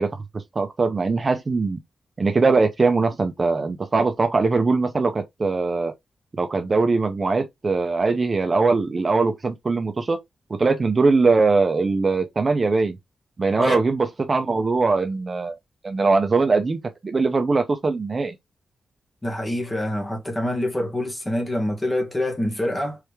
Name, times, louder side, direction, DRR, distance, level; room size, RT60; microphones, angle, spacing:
voice 1, 0.0-1.8 2.2-5.9 6.3-10.2 10.6-13.0 13.4-15.6 15.8-18.3, right 3 dB, 30° right, 0.6 m, -21 dB
voice 2, 19.2-23.0, left 1 dB, 15° left, 1.6 m, -26 dB
4.8 x 3.3 x 3.4 m
wide cardioid pair, 160°, 0 cm